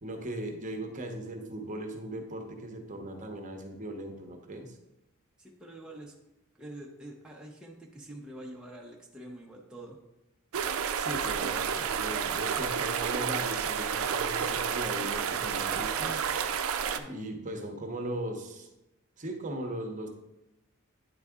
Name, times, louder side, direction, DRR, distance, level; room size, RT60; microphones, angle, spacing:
voice 1, 0.0-4.7 10.9-16.2 17.1-18.7 19.2-20.1, right 1 dB, 35° right, 3 dB, 0.9 m, -38 dB
voice 2, 5.4-6.1 6.6-10.0 16.8-17.2, right 1 dB, 5° right, -2 dB, 0.7 m, -46 dB
sound 1, 10.5-17.0, right 7 dB, 70° right, 0.4 m, -30 dB
9.3 x 4.0 x 3.6 m, 0.93 s
head